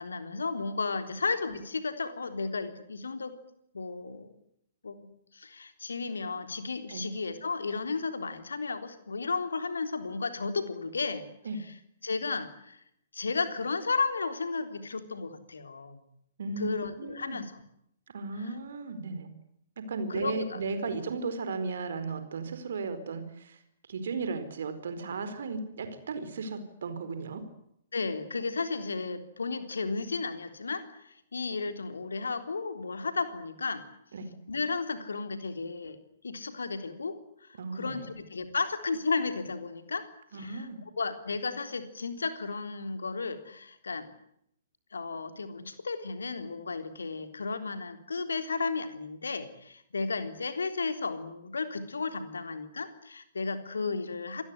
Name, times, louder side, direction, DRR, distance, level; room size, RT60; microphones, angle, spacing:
voice 1, 0.0-3.4 3.7-4.3 4.8-11.3 12.0-12.8 13.1-16.0 16.6-17.5 18.4-18.5 20.1-20.6 27.9-33.8 34.5-36.0 36.2-40.0 40.3-40.7 41.0-44.1 44.9-54.4, left 4 dB, 70° left, 9 dB, 3.7 m, -33 dB
voice 2, 17.0-17.4 18.1-19.3 19.8-23.6 23.9-27.4 34.1-34.3 37.6-38.1 40.3-40.8, right 4 dB, 55° right, 10 dB, 4.5 m, -35 dB
27.0 x 20.0 x 9.7 m, 0.75 s
figure-of-eight pair, 120°, 0 cm